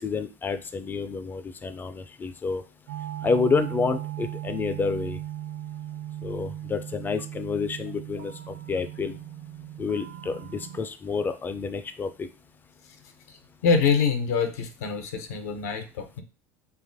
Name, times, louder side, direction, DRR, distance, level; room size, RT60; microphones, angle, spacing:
voice 1, 0.0-2.6 3.2-5.2 6.2-9.2 9.8-12.3, left 4 dB, 25° left, 10 dB, 0.3 m, -29 dB
sound 1, 2.9-10.8, right 12 dB, 70° right, 0.5 m, -37 dB
voice 2, 13.6-16.2, left 5 dB, 80° left, 6 dB, 0.5 m, -25 dB
2.9 x 2.3 x 2.6 m, 0.32 s
hypercardioid pair, 90°, 8 cm